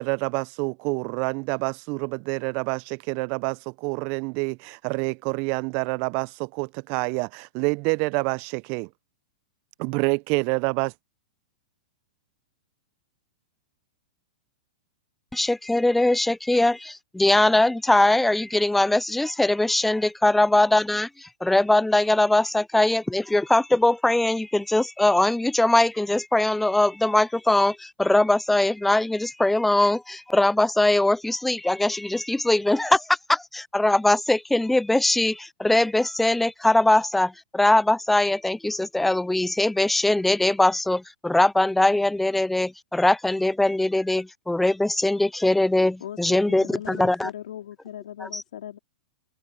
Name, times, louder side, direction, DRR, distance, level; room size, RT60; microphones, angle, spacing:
voice 1, 0.0-8.9 9.8-10.9, right 31 dB, 45° right, 0.9 m, -27 dB
voice 2, 15.3-47.3 48.2-48.4, left 2 dB, 5° left, 0.5 m, -21 dB
voice 3, 46.0-48.8, left 11 dB, 65° left, 3.6 m, -38 dB
open air
hypercardioid pair, 105°, 4 cm